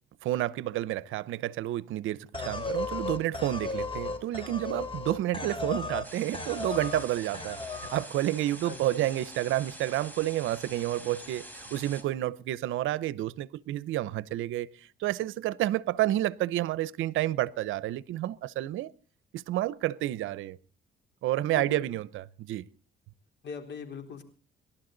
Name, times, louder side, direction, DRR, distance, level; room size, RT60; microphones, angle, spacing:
voice 1, 0.2-18.9 19.3-20.6 21.2-22.6, right 14 dB, 85° right, 0.7 m, -30 dB
sound 1, 2.3-6.1 6.3-7.1 7.3-8.1, left 3 dB, 25° left, 2.6 m, -35 dB
sound 2, 6.0-12.0, equal, 10° left, 4.5 m, -46 dB
voice 2, 8.6-9.1 21.5-21.8 23.4-24.2, left 6 dB, 65° left, 3.9 m, -41 dB
29.0 x 12.0 x 3.9 m
cardioid pair, 90°, 20 cm